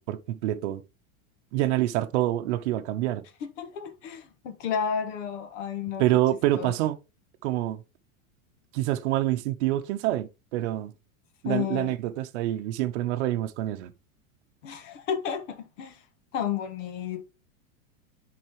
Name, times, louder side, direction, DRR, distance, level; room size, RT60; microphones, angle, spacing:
voice 1, 0.1-0.8 1.5-3.2 6.0-7.0 7.4-7.8 8.7-10.9 11.4-13.9, right 14 dB, 55° right, 0.8 m, -26 dB
voice 2, 3.6-6.0 6.5-6.8 11.4-11.9 14.6-16.0 16.3-17.2, left 8 dB, 60° left, 1.3 m, -32 dB
10.0 x 4.3 x 3.0 m
supercardioid pair, 165°, 42 cm